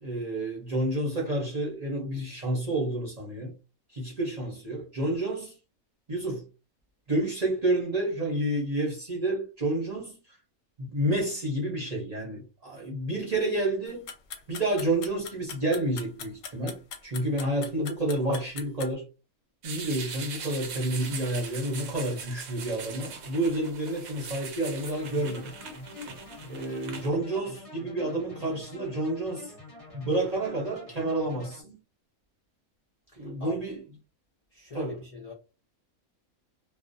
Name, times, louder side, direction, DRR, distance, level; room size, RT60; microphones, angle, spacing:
voice 1, 0.0-3.5 3.9-5.5 6.1-6.5 7.1-10.2 10.8-14.1 14.5-19.0 19.6-25.6 26.5-29.5 29.9-31.8 33.2-33.8 34.7-35.0, right 1 dB, 35° right, 0.7 m, -29 dB
sound 1, 13.9-18.9, left 6 dB, 70° left, 0.9 m, -40 dB
sound 2, 19.6-27.1, right 6 dB, 75° right, 1.0 m, -41 dB
sound 3, 24.8-31.6, left 2 dB, 30° left, 0.8 m, -46 dB
voice 2, 33.1-33.6 34.5-35.3, left 4 dB, 55° left, 0.4 m, -43 dB
2.4 x 2.0 x 2.5 m
omnidirectional pair, 1.5 m